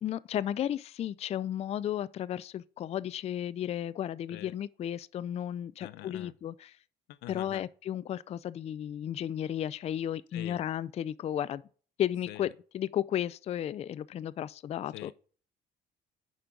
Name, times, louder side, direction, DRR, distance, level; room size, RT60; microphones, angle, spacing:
voice 1, 0.0-6.7 7.3-11.6 12.0-12.5 12.7-15.1, left 10 dB, 40° left, 0.3 m, -34 dB
voice 2, 5.8-6.3 7.1-7.6 10.3-10.6 12.3-12.5 14.9-15.1, left 16 dB, 90° left, 0.6 m, -44 dB
9.2 x 5.2 x 3.7 m
cardioid pair, 110°, 17 cm